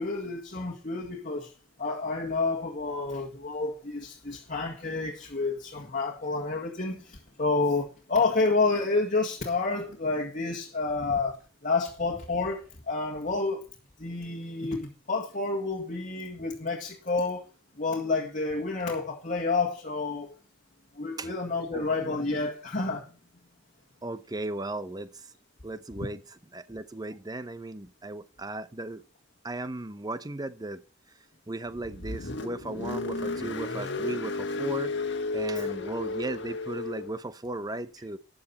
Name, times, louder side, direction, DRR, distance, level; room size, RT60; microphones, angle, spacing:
voice 1, 0.0-1.5 1.8-13.6 14.0-17.5 17.8-20.3 21.0-23.1 35.6-35.8, left 3 dB, 40° left, 1.9 m, -29 dB
voice 2, 21.7-22.2 24.0-25.3 25.6-29.0 29.4-30.8 31.5-35.1 35.3-38.2, right 2 dB, 20° right, 0.7 m, -36 dB
Car, 31.7-37.1, left 3 dB, 60° left, 1.5 m, -33 dB
13.5 x 8.9 x 4.1 m
head